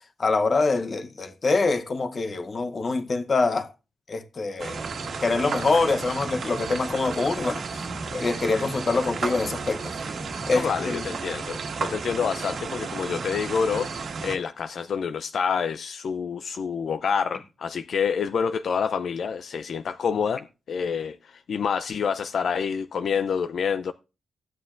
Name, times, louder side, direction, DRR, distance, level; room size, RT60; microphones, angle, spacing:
voice 1, 0.2-3.7 4.1-4.8 5.2-7.8 8.1-9.9 10.5-11.0, left 3 dB, 35° left, 0.8 m, -25 dB
sound 1, 4.6-14.4, right 4 dB, 60° right, 1.5 m, -33 dB
voice 2, 10.5-23.9, left 6 dB, 60° left, 0.4 m, -27 dB
15.0 x 9.3 x 2.5 m
wide cardioid pair, 165°, 0 cm